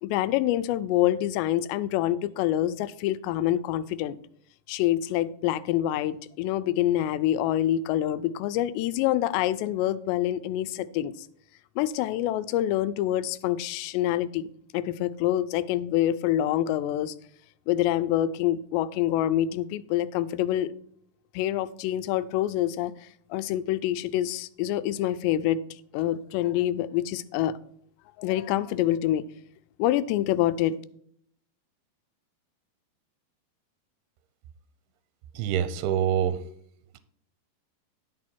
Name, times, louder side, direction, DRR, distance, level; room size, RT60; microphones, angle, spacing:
voice 1, 0.0-4.2 4.7-11.1 11.8-14.4 14.7-17.1 17.7-20.7 21.3-22.9 23.3-25.6 25.9-27.5 28.2-29.3 29.8-30.8, left 13 dB, 85° left, 13 dB, 2.8 m, -26 dB
voice 2, 35.4-36.4, right 9 dB, 80° right, 13 dB, 2.4 m, -25 dB
11.0 x 6.4 x 4.5 m, 0.65 s
omnidirectional pair, 5.0 m